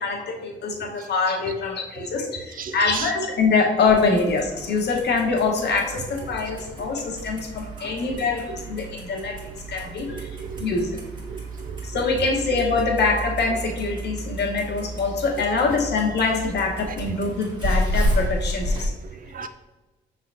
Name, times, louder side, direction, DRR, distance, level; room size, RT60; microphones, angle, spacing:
voice 1, 0.0-10.3 10.6-11.0 11.8-18.9, left 4 dB, 60° left, 1 dB, 1.0 m, -24 dB
voice 2, 0.7-1.1 1.5-1.6 1.9-2.1 2.5-3.1 6.8-6.9 7.8-8.2 9.4-9.5 9.8-10.9 11.3-12.2 13.5-13.6 15.5-15.6 16.9-17.2 19.0-19.5, right 6 dB, 45° right, 9 dB, 0.5 m, -37 dB
Clock, 3.8-18.9, equal, 25° right, 1.4 m, -31 dB
5.5 x 3.3 x 2.6 m, 1.2 s
cardioid pair, 90°, 20 cm